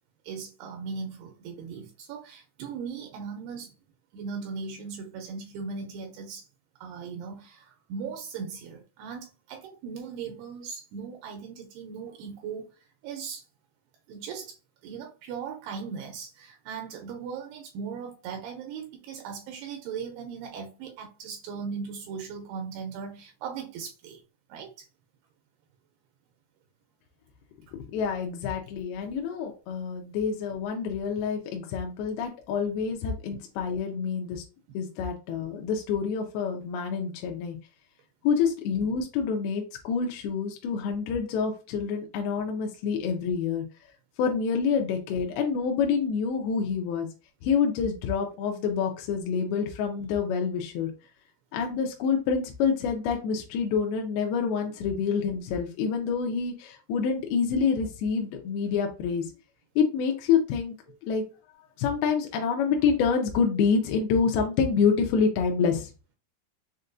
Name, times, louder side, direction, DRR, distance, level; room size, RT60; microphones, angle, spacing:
voice 1, 0.2-3.7 4.1-6.4 6.8-12.8 13.0-13.4 14.1-14.6 14.8-24.2 24.5-24.9 34.7-34.8, right 6 dB, 80° right, 2.6 m, -38 dB
voice 2, 27.9-34.4 34.7-37.6 38.2-43.6 44.2-47.1 47.4-50.9 51.5-59.3 59.8-60.7 61.0-61.2 61.8-65.9, left 6 dB, 80° left, 2.4 m, -27 dB
6.5 x 2.2 x 2.5 m
omnidirectional pair, 4.7 m